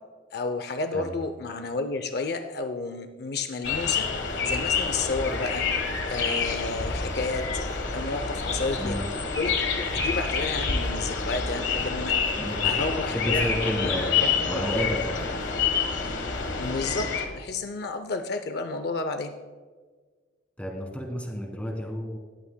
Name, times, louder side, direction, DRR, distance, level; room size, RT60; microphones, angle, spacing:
voice 1, 0.3-4.1 4.4-5.6 6.1-7.5 7.9-9.0 9.4-12.1 12.6-14.6 16.6-19.3, left 3 dB, 55° left, 8 dB, 0.5 m, -31 dB
sound 1, 3.6-17.3, left 5 dB, 75° left, 1.3 m, -28 dB
voice 2, 8.8-9.1 12.4-12.7 13.1-15.3 20.6-22.2, equal, 5° left, 1 dB, 1.5 m, -31 dB
20.0 x 8.5 x 2.2 m, 1.5 s
head